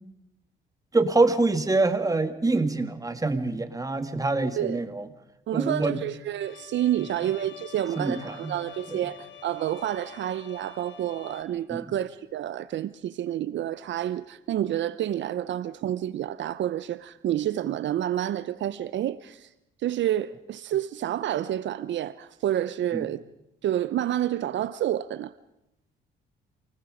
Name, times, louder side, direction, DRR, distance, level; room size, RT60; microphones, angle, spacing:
voice 1, 0.9-5.1 5.5-6.0 8.0-8.5 8.9-9.0 11.7-11.9 22.9-23.1, right 3 dB, 15° right, 2.1 m, -25 dB
voice 2, 5.5-19.5 19.8-23.2 23.6-25.3, right 11 dB, 70° right, 0.7 m, -29 dB
Bowed string instrument, 6.4-11.4, left 10 dB, 75° left, 2.4 m, -47 dB
28.0 x 20.0 x 5.1 m
cardioid pair, 90°, 20 cm